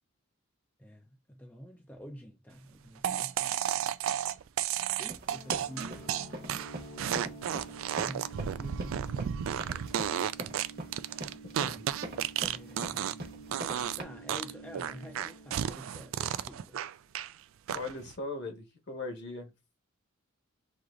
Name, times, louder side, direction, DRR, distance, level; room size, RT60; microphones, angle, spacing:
voice 1, 0.8-3.9 5.0-6.2 8.0-10.0 12.4-13.7 14.0-16.8, equal, 10° left, 0.4 m, -48 dB
sound 1, 3.0-13.3 13.5-14.0 14.3-17.3 17.7-18.1, right 10 dB, 65° right, 0.3 m, -33 dB
sound 2, 5.1-14.0, right 2 dB, 45° right, 1.0 m, -42 dB
sound 3, 5.3-16.8, right 3 dB, 80° left, 0.8 m, -49 dB
voice 2, 17.7-19.5, left 2 dB, 55° left, 1.3 m, -39 dB
6.2 x 2.9 x 2.4 m
head